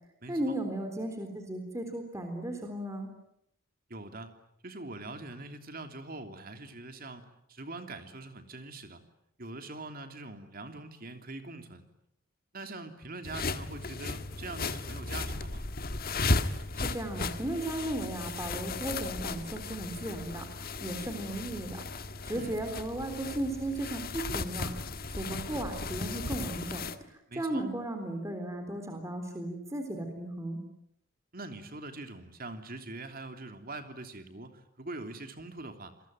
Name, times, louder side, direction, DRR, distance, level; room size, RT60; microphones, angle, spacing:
voice 1, 0.3-3.1 16.7-24.7 25.2-30.6, right 1 dB, 15° right, 5 dB, 3.8 m, -36 dB
voice 2, 3.9-4.3 4.6-9.0 9.4-11.8 12.5-15.6 22.3-22.5 27.3-27.6 31.3-35.9, right 2 dB, 45° right, 7 dB, 3.1 m, -43 dB
sound 1, 13.2-27.0, left 3 dB, 45° left, 1.5 m, -35 dB
28.5 x 22.0 x 9.2 m, 0.78 s
head